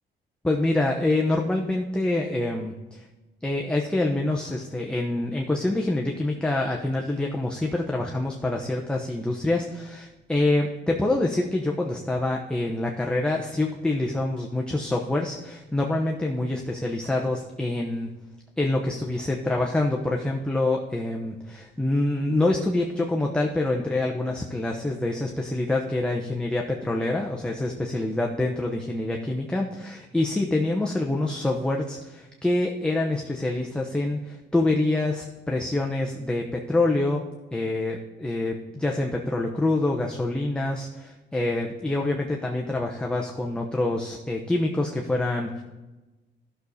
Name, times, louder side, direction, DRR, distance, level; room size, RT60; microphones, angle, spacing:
voice 1, 0.4-3.0 3.4-18.1 18.6-37.2 37.5-45.6, left 2 dB, 5° left, 0 dB, 0.9 m, -26 dB
12.5 x 6.6 x 4.2 m, 1.1 s
cardioid pair, 90°, 20 cm